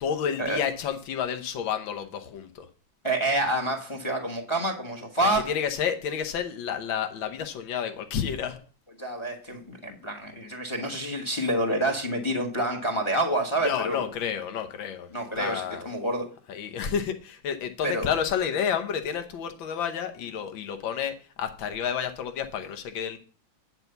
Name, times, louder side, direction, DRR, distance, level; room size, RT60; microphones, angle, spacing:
voice 1, 0.0-2.7 5.2-8.6 13.6-15.1 15.4-15.8 16.5-23.2, left 8 dB, 80° left, 7 dB, 1.7 m, -30 dB
voice 2, 3.0-5.5 9.0-14.1 15.1-16.3 17.8-18.1, right 1 dB, 20° left, 4 dB, 1.0 m, -28 dB
9.6 x 4.5 x 6.7 m, 0.40 s
omnidirectional pair, 2.1 m